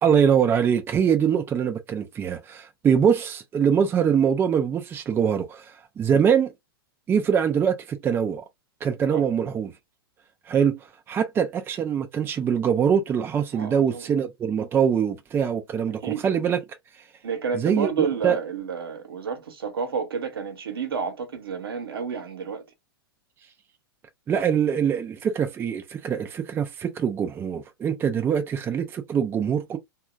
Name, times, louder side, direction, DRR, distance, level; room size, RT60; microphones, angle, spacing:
voice 1, 0.0-6.5 7.1-8.4 8.8-9.7 10.5-10.8 11.1-16.6 17.5-18.4 24.3-29.8, right 7 dB, 20° right, 0.5 m, -23 dB
voice 2, 13.5-14.1 15.9-16.2 17.2-22.6, right 6 dB, 75° right, 1.0 m, -30 dB
2.8 x 2.4 x 2.3 m
figure-of-eight pair, 105°, 13 cm